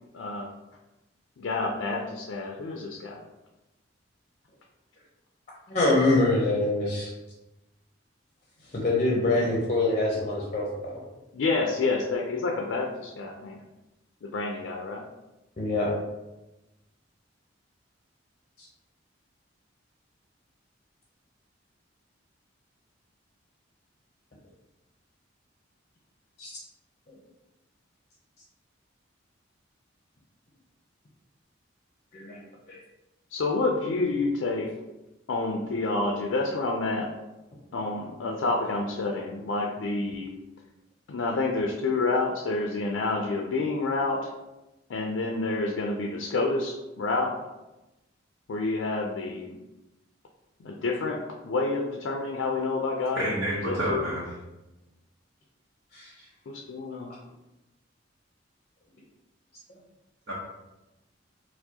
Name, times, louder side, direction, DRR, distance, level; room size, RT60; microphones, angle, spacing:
voice 1, 0.1-0.5 1.4-3.2 11.3-13.6 14.2-15.0 33.3-34.7 35.3-37.1 37.7-40.3 41.1-44.3 44.9-47.4 48.5-49.6 50.6-53.3 53.6-54.0 56.5-57.1, left 3 dB, 90° left, 1 dB, 0.4 m, -28 dB
voice 2, 5.7-7.1 8.7-10.7 15.6-15.9 26.4-26.5 32.1-32.4 32.7-32.8 55.9-56.1, left 2 dB, 40° left, -3 dB, 0.5 m, -24 dB
voice 3, 53.1-54.3 60.3-60.4, right 1 dB, 80° right, -7 dB, 0.8 m, -28 dB
4.5 x 2.1 x 2.7 m, 1.0 s
head